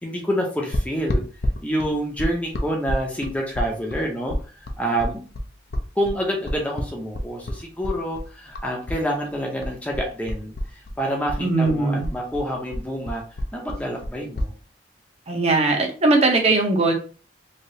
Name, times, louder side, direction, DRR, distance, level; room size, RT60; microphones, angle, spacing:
voice 1, 0.0-1.2 1.6-4.3 4.8-5.2 6.0-10.5 11.0-13.2 13.5-14.5, equal, 10° left, 0 dB, 0.6 m, -27 dB
sound 1, 0.7-9.0 9.3-11.0 11.3-14.5, equal, 60° left, 0.5 m, -28 dB
voice 2, 11.4-12.1 15.3-16.9, right 3 dB, 35° right, 1 dB, 0.7 m, -19 dB
3.2 x 2.8 x 2.7 m, 0.37 s
head